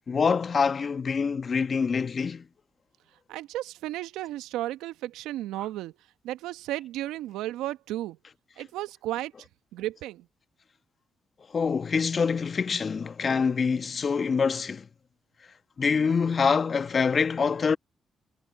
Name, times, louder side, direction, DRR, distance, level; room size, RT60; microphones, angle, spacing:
voice 1, 0.1-2.4 11.5-14.8 15.8-17.8, left 5 dB, 50° left, 1.2 m, -25 dB
voice 2, 3.3-5.9 6.2-8.2 8.6-9.3 9.7-10.3, right 15 dB, 80° right, 1.3 m, -34 dB
hypercardioid pair, 45°, 0 cm